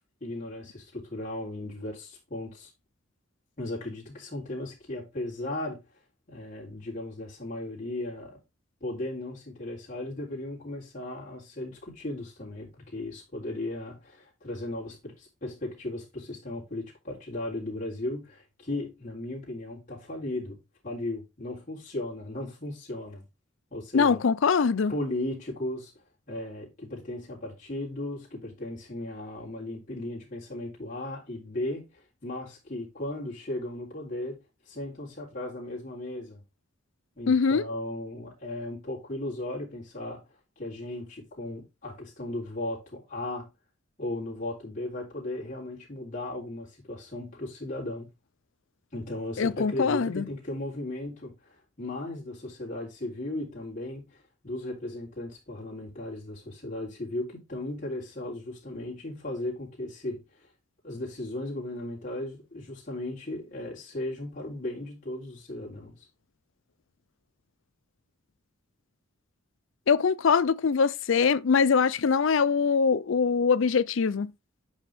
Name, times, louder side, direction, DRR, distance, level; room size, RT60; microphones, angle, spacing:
voice 1, 0.2-2.7 3.6-5.8 6.3-8.4 8.8-20.6 20.8-23.2 23.7-24.2 24.9-25.9 26.3-34.4 34.7-36.4 37.2-40.2 40.6-43.5 44.0-48.1 48.9-60.5 60.8-66.1, left 1 dB, 40° left, 3.4 m, -36 dB
voice 2, 23.9-24.9 37.3-37.6 49.4-50.2 69.9-74.3, left 5 dB, 70° left, 0.5 m, -23 dB
8.9 x 5.2 x 3.5 m
head